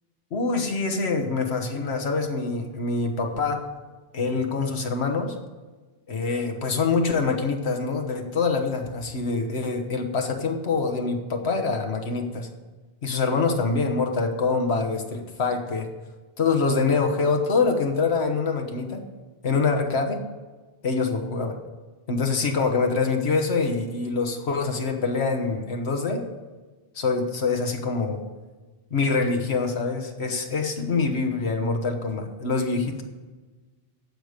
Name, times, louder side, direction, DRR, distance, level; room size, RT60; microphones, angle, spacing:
voice 1, 0.3-3.7 4.1-5.3 6.1-12.5 13.0-15.9 16.4-19.0 19.4-20.2 20.8-21.6 22.1-26.3 26.9-28.2 28.9-33.0, left 4 dB, 85° left, 4 dB, 1.5 m, -25 dB
15.0 x 5.1 x 8.1 m, 1.3 s
omnidirectional pair, 1.1 m